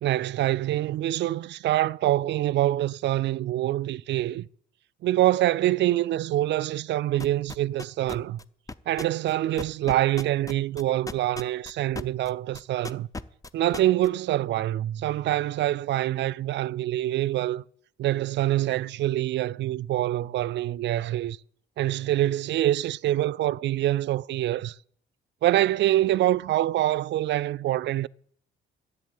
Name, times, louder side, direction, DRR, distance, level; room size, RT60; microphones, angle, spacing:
voice 1, 0.0-4.5 5.0-8.4 8.9-13.1 13.5-17.6 18.0-21.4 21.8-24.8 25.4-28.1, right 14 dB, 65° right, 0.4 m, -25 dB
sound 1, 7.2-12.3 12.5-14.1, left 3 dB, 15° left, 0.6 m, -35 dB
10.5 x 8.1 x 8.5 m
cardioid pair, 90°, 20 cm